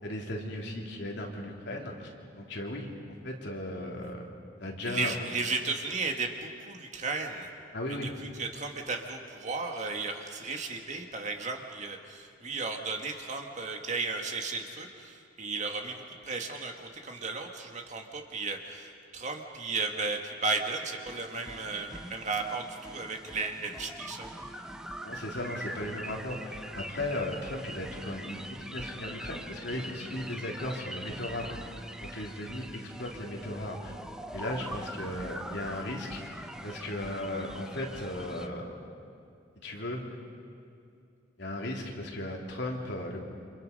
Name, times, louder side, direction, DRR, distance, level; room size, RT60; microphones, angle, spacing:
voice 1, 0.0-2.9 3.2-4.3 4.6-5.2 7.7-8.1 25.0-31.7 32.0-33.9 34.3-36.2 36.6-38.7 39.5-40.0 41.4-43.2, left 1 dB, 65° left, -1 dB, 3.5 m, -36 dB
voice 2, 4.8-7.5 7.9-24.3, right 4 dB, 40° right, 3 dB, 2.0 m, -35 dB
sound 1, 21.1-38.5, equal, 5° right, 0.9 m, -43 dB
29.5 x 26.5 x 5.5 m, 2.5 s
head